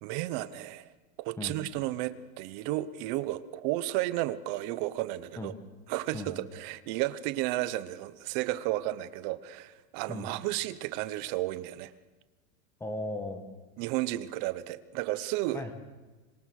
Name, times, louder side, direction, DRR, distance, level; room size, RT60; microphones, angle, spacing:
voice 1, 0.0-0.9 1.2-5.5 5.9-11.9 13.8-15.6, right 16 dB, 35° right, 15 dB, 0.9 m, -33 dB
voice 2, 12.8-13.4 15.5-15.7, left 2 dB, 5° left, 7 dB, 1.7 m, -36 dB
26.5 x 22.0 x 6.5 m, 1.2 s
supercardioid pair, 180°, 40 cm